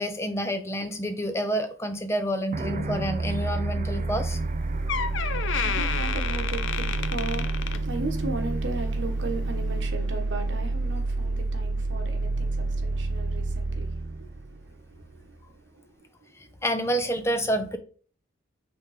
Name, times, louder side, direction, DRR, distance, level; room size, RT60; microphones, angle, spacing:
voice 1, 0.0-4.4 16.6-17.8, equal, 15° left, 0.6 m, -28 dB
sound 1, 2.5-15.2, right 2 dB, 40° right, 0.4 m, -29 dB
Door, 4.4-4.5 4.9-8.4 8.7-9.0 9.7-9.8, left 7 dB, 75° left, 0.5 m, -31 dB
voice 2, 5.1-15.4, right 2 dB, 65° right, 1.3 m, -37 dB
5.6 x 3.6 x 4.9 m
head